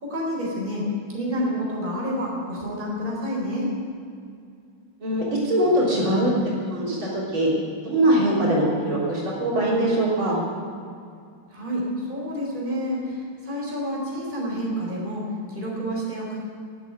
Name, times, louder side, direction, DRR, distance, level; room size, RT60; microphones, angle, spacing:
voice 1, 0.0-3.7 11.5-16.5, equal, 20° right, -4 dB, 4.5 m, -29 dB
voice 2, 5.0-6.3 6.7-7.5 7.8-10.4, right 1 dB, 70° right, -6 dB, 4.3 m, -22 dB
12.5 x 10.5 x 9.5 m, 2.3 s
omnidirectional pair, 2.3 m